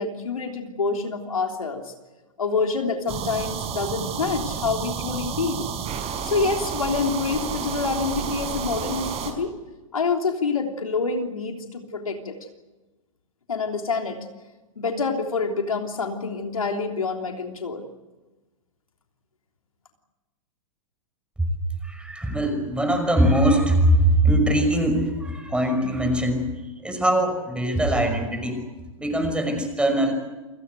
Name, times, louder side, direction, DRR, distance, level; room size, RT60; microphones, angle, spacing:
voice 1, 0.0-1.9 2.4-5.7 6.2-9.5 9.9-12.4 13.5-14.2 14.8-17.9, left 4 dB, 90° left, 3 dB, 3.3 m, -27 dB
sound 1, 3.1-9.3, right 7 dB, 35° right, 5.1 m, -31 dB
voice 2, 21.8-26.5 26.8-28.6 29.0-30.1, right 1 dB, 5° right, 6 dB, 5.7 m, -21 dB
28.5 x 18.0 x 8.2 m, 1.2 s
hypercardioid pair, 110°, 17 cm